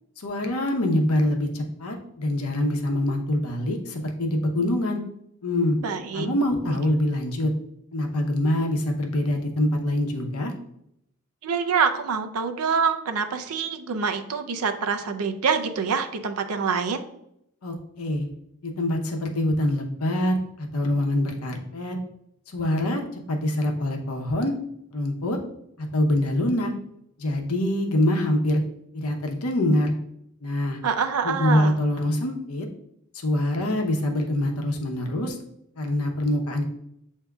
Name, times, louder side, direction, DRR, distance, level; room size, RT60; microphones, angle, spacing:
voice 1, 0.2-5.0 5.4-5.8 6.1-7.5 7.9-10.5 17.6-18.3 18.6-22.0 22.5-23.0 23.3-24.6 24.9-25.4 25.8-26.7 27.2-28.6 28.9-29.9 30.4-30.8 31.2-32.7 33.1-35.4 35.8-36.6, left 1 dB, 80° left, 3 dB, 0.8 m, -25 dB
voice 2, 5.8-6.3 11.4-17.0 30.8-31.8, right 6 dB, 85° right, 7 dB, 0.5 m, -25 dB
7.7 x 2.7 x 2.3 m, 0.76 s
head